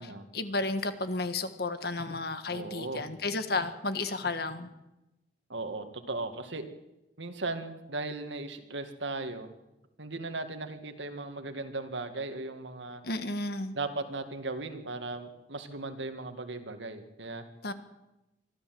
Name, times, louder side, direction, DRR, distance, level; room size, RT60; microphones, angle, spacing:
voice 1, 0.0-4.7 13.0-13.7 17.6-17.7, left 3 dB, 55° left, 10 dB, 1.6 m, -33 dB
voice 2, 2.5-3.1 5.5-6.7 7.2-9.5 10.0-13.0 13.7-17.4, right 3 dB, 80° right, 7 dB, 2.1 m, -37 dB
24.0 x 13.5 x 7.8 m, 0.96 s
head